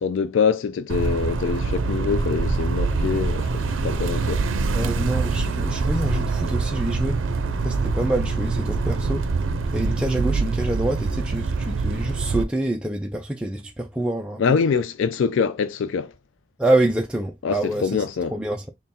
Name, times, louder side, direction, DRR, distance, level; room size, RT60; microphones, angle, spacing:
voice 1, 0.0-4.4 14.4-16.1 17.4-18.3, left 6 dB, 75° left, 0.4 m, -24 dB
sound 1, 0.9-12.4, right 4 dB, 85° right, 0.5 m, -24 dB
voice 2, 4.7-7.2 7.6-9.3 9.7-14.4 16.6-18.0 18.3-18.7, right 1 dB, 5° right, 0.4 m, -26 dB
3.7 x 2.1 x 4.2 m
head